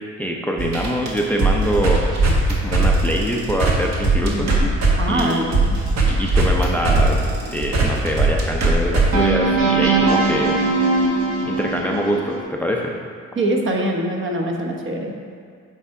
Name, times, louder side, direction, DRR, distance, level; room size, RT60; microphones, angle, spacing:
voice 1, 0.2-2.1 2.6-4.5 5.0-5.5 6.1-7.2 7.5-10.6 11.4-12.9, equal, 5° left, 0 dB, 0.6 m, -24 dB
sound 1, 0.6-4.9 5.2-12.4, right 3 dB, 60° right, 1.4 m, -19 dB
voice 2, 4.2-4.7 5.0-5.8 13.4-15.1, right 1 dB, 40° right, 1 dB, 1.0 m, -23 dB
8.1 x 3.5 x 4.7 m, 2.3 s
cardioid pair, 90°, 30 cm